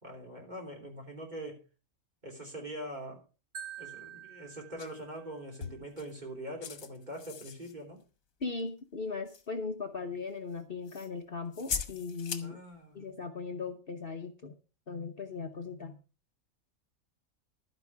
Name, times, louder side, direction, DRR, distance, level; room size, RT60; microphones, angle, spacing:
voice 1, 0.0-1.6 2.2-3.2 3.8-8.0 12.4-13.1, right 1 dB, 30° right, 0 dB, 3.4 m, -43 dB
Marimba xylophone, 3.5-5.6, right 9 dB, 65° right, 1.5 m, -47 dB
sound 1, 4.8-4.9 5.6-6.2 6.6-7.7 8.6-8.7 9.3-9.5 10.9-11.1 11.5-12.5, left 6 dB, 80° left, 1.5 m, -39 dB
voice 2, 8.4-12.6 12.9-14.5 14.9-16.0, left 4 dB, 45° left, 5 dB, 1.2 m, -38 dB
12.0 x 9.6 x 4.7 m, 0.33 s
omnidirectional pair, 1.4 m